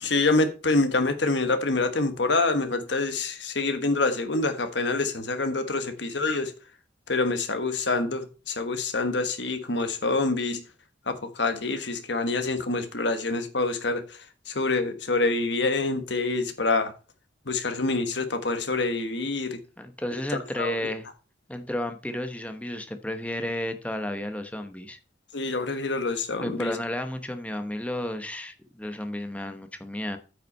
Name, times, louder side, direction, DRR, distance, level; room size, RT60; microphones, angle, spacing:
voice 1, 0.0-6.5 7.1-10.6 11.1-14.2 14.5-16.9 17.5-19.6 20.6-20.9 25.3-26.7, left 3 dB, 70° left, 1.4 m, -26 dB
voice 2, 19.8-21.1 21.5-25.0 26.4-30.2, left 1 dB, 5° left, 0.9 m, -32 dB
9.0 x 5.8 x 5.5 m
head